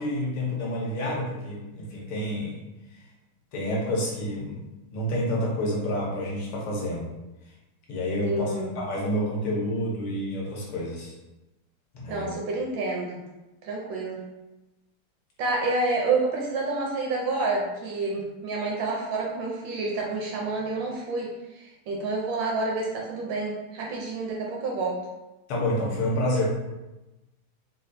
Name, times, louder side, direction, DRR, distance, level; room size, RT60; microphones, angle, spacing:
voice 1, 0.0-2.6 3.5-4.6 4.9-7.1 7.9-11.1 11.9-12.3 25.5-26.5, left 1 dB, 75° left, -3 dB, 1.7 m, -28 dB
voice 2, 8.2-8.7 12.1-13.2 13.6-14.2 15.4-25.0, right 3 dB, 75° right, -2 dB, 1.2 m, -29 dB
4.2 x 2.3 x 2.5 m, 1.0 s
omnidirectional pair, 2.4 m